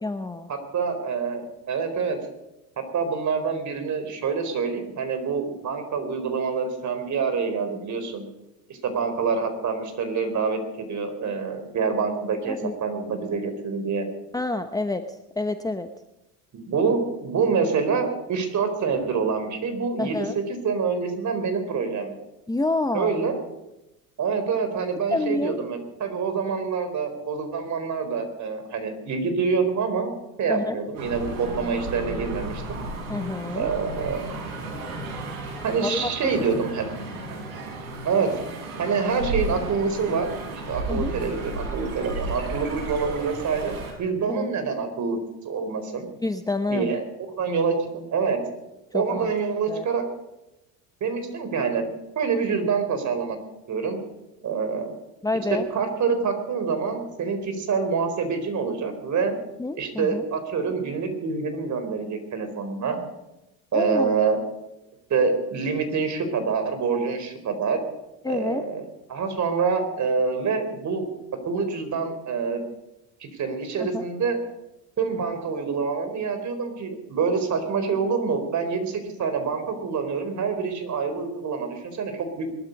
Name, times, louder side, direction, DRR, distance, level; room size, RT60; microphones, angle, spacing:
voice 1, 0.0-0.5 12.5-12.7 14.3-15.9 20.0-20.4 22.5-23.2 25.1-25.6 30.5-30.8 33.1-33.7 35.8-36.1 36.5-36.6 40.9-41.1 44.3-44.5 46.2-46.9 47.4-47.6 48.9-49.3 49.7-49.9 55.2-55.7 59.6-60.2 63.7-64.2 68.2-68.7 73.8-74.1, left 2 dB, 10° left, 8 dB, 1.0 m, -28 dB
voice 2, 0.7-1.4 1.7-2.2 2.8-8.2 8.7-14.1 16.5-20.2 20.6-22.2 22.9-23.4 24.2-30.1 30.4-32.8 33.5-34.2 35.6-36.8 37.3-37.4 38.0-45.2 45.4-46.1 46.7-47.0 47.4-48.4 48.9-50.0 51.0-51.9 52.2-53.4 53.7-54.0 54.4-54.9 55.5-59.3 59.8-63.0 63.7-64.4 65.1-67.8 68.3-68.8 69.1-71.1 71.5-72.6 73.2-74.4 75.0-82.5, right 5 dB, 45° right, 7 dB, 4.3 m, -26 dB
sound 1, 30.9-43.9, right 2 dB, 85° right, 6.6 m, -34 dB
21.0 x 12.5 x 5.3 m, 0.93 s
hypercardioid pair, 85°, 42 cm